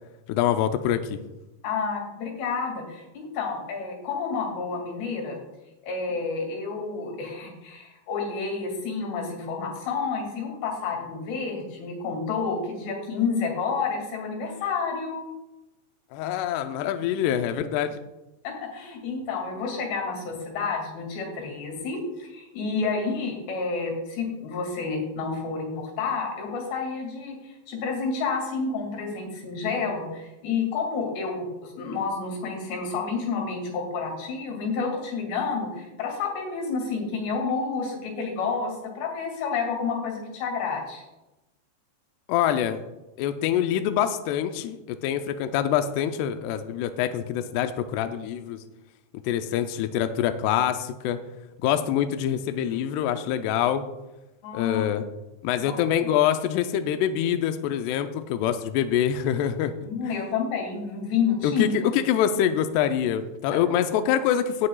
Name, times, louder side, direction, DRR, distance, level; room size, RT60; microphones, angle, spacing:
voice 1, 0.3-1.2 16.1-18.0 42.3-42.8 43.2-48.6 49.2-51.2 51.6-53.8 54.5-55.1 55.4-59.7 60.0-60.1 61.4-64.7, left 10 dB, 85° left, 8 dB, 2.4 m, -25 dB
voice 2, 1.6-5.4 5.8-15.3 18.4-41.0 54.4-54.8 55.6-55.7 59.8-61.9 63.5-63.6, left 5 dB, 70° left, 1 dB, 4.4 m, -30 dB
17.0 x 8.5 x 2.3 m, 0.99 s
omnidirectional pair, 5.2 m